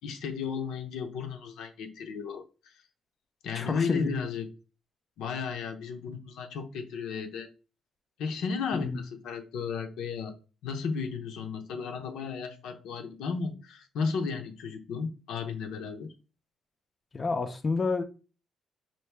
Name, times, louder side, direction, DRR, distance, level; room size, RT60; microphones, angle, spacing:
voice 1, 0.0-2.7 3.4-4.5 5.2-7.5 8.2-10.3 10.6-16.1, left 5 dB, 85° left, 0.6 m, -34 dB
voice 2, 3.5-4.1 8.7-9.0 17.1-18.0, left 4 dB, 30° left, 0.5 m, -29 dB
4.5 x 2.6 x 3.2 m
cardioid pair, 90°, 0 cm